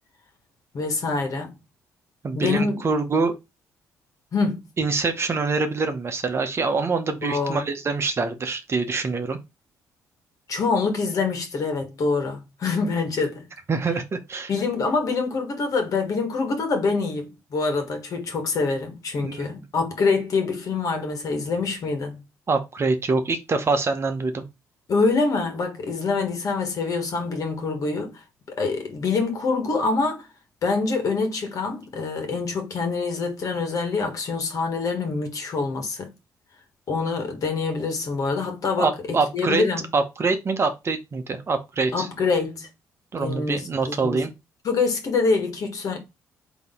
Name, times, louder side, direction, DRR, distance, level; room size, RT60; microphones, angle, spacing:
voice 1, 0.7-1.5 2.3-2.8 4.3-4.6 7.2-7.6 10.5-13.5 14.5-22.2 24.9-28.2 28.5-30.3 30.6-36.1 36.9-39.9 41.9-42.7 43.2-44.2 44.6-46.0, left 4 dB, 55° left, 1.4 m, -25 dB
voice 2, 2.2-3.3 4.8-9.4 13.7-14.5 19.2-19.5 22.5-24.4 38.8-39.6 39.9-42.1 43.1-44.3, right 4 dB, 40° right, 0.9 m, -25 dB
4.0 x 3.0 x 3.6 m
supercardioid pair, 70°, 7 cm